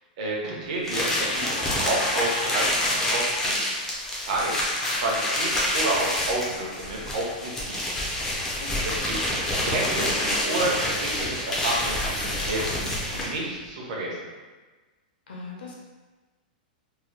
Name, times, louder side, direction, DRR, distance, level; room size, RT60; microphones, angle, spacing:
voice 1, 0.2-3.6 4.1-4.5 4.9-7.8 8.2-8.5 8.8-9.3 9.6-14.3, right 2 dB, 45° right, -3 dB, 0.6 m, -30 dB
sound 1, 0.8-13.4, left 1 dB, 5° left, 0.4 m, -27 dB
sound 2, 1.4-10.1, left 2 dB, 60° left, 0.6 m, -41 dB
voice 2, 8.6-9.0 15.3-15.7, left 2 dB, 90° left, -2 dB, 0.8 m, -40 dB
2.8 x 2.1 x 3.1 m, 1.3 s
supercardioid pair, 175°, 5 cm